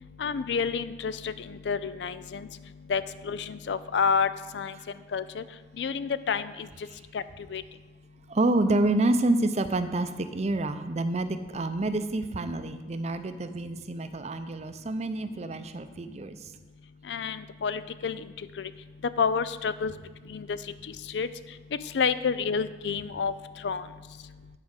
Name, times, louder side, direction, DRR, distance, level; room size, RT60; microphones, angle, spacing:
voice 1, 0.2-2.5 2.9-4.3 4.5-4.7 5.1-5.4 5.8-6.7 7.1-7.2 7.5-7.6 17.1-18.2 18.6-18.7 19.2-19.9 20.3-20.6 21.1-21.3 21.9-23.3 23.6-23.8, left 6 dB, 80° left, 14 dB, 0.4 m, -29 dB
voice 2, 8.3-16.4, right 2 dB, 40° right, 9 dB, 0.5 m, -28 dB
9.5 x 4.9 x 6.5 m, 1.2 s
head